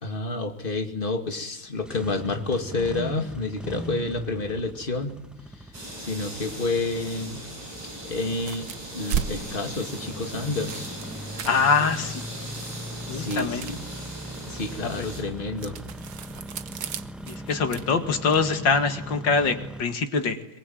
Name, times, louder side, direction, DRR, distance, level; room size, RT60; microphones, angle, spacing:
voice 1, 0.0-5.1 5.6-5.7 6.0-7.4 8.0-8.7 8.9-10.9 11.8-11.9 13.1-13.8 14.5-15.8, left 3 dB, 25° left, 6 dB, 2.5 m, -29 dB
Engine starting, 1.7-19.8, equal, ahead, 0.7 m, -40 dB
sound 1, 5.7-15.2, right 1 dB, 50° right, 7.8 m, -39 dB
sound 2, 8.3-18.5, right 8 dB, 65° right, 1.7 m, -38 dB
voice 2, 11.5-12.5 13.1-13.7 14.8-15.1 17.3-20.6, left 5 dB, 65° left, 8 dB, 2.7 m, -24 dB
23.0 x 23.0 x 9.3 m, 0.83 s
omnidirectional pair, 2.2 m